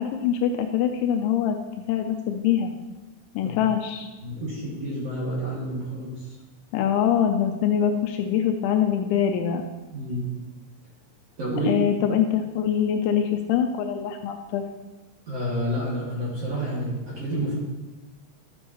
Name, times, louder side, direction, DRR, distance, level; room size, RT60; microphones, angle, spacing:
voice 1, 0.0-1.6 1.9-2.7 3.4-4.1 6.7-9.6 11.7-14.6, left 9 dB, 85° left, 5 dB, 2.7 m, -24 dB
voice 2, 4.2-6.3 9.9-10.3 11.4-11.7 15.3-17.6, equal, 60° right, -7 dB, 1.6 m, -29 dB
12.0 x 7.3 x 3.0 m, 1.1 s
omnidirectional pair, 5.8 m